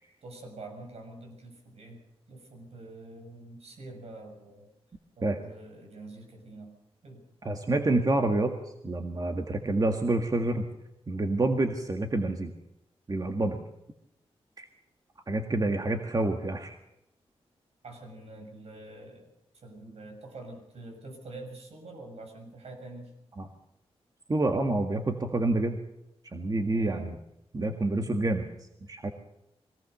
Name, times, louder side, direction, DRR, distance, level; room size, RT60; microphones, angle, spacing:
voice 1, 0.2-4.7 5.2-6.7 7.0-7.2 17.8-23.2 26.7-27.1, right 2 dB, 75° right, 3 dB, 7.1 m, -46 dB
voice 2, 7.4-8.6 8.8-10.6 11.1-12.5 13.1-13.6 14.6-14.7 15.3-16.8 23.4-23.5 24.3-25.8 26.3-27.2 27.5-28.5 28.9-29.1, right 2 dB, 35° right, 5 dB, 1.8 m, -27 dB
22.5 x 18.0 x 6.8 m, 0.82 s
cardioid pair, 85°, 11 cm